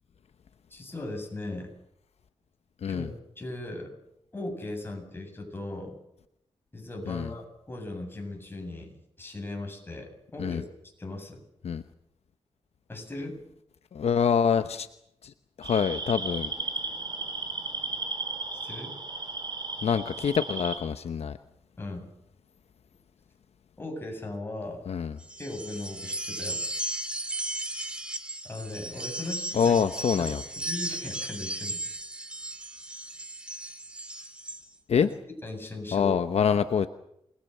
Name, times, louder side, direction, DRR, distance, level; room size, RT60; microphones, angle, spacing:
voice 1, 0.7-1.7 2.9-4.0 4.3-6.0 6.7-10.7 11.0-11.4 12.9-13.4 18.6-18.9 21.8-22.1 23.8-24.8 25.4-26.6 28.4-29.8 30.2-31.8 35.0-35.1 35.4-36.2, left 2 dB, 20° left, 2 dB, 7.9 m, -38 dB
voice 2, 13.9-14.9 15.2-15.3 15.6-16.5 19.8-21.4 24.9-25.2 29.5-30.4 34.9-35.1 35.9-36.9, left 7 dB, 70° left, 10 dB, 0.9 m, -25 dB
sound 1, 15.6-20.8, right 3 dB, 45° right, 5.5 m, -35 dB
sound 2, 25.2-34.6, right 1 dB, 10° right, 2.5 m, -36 dB
28.5 x 20.5 x 6.8 m, 0.78 s
wide cardioid pair, 135°, 11 cm